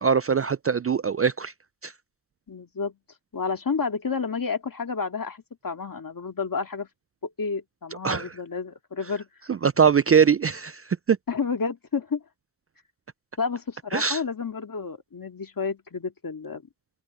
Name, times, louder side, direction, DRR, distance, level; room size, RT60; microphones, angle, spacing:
voice 1, 0.0-1.5 1.8-1.9 8.0-8.3 9.5-11.2 13.9-14.2, right 6 dB, 35° right, 0.4 m, -22 dB
voice 2, 2.5-3.0 3.3-6.9 7.2-9.3 11.3-12.2 13.4-16.6, left 5 dB, 50° left, 2.2 m, -30 dB
open air
wide cardioid pair, 65°, 42 cm